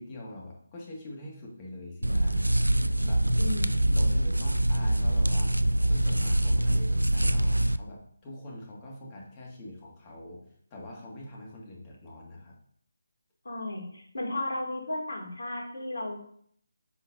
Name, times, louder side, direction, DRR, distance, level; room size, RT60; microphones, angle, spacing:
voice 1, 0.0-2.7 3.0-3.3 3.9-5.5 5.8-12.6, left 1 dB, 20° left, -2 dB, 1.9 m, -44 dB
sound 1, 2.0-7.8, right 1 dB, 85° right, 0.4 m, -24 dB
voice 2, 3.4-3.8 13.4-16.2, left 2 dB, 60° left, -1 dB, 2.5 m, -34 dB
9.9 x 5.8 x 2.7 m, 0.64 s
figure-of-eight pair, 150°, 0 cm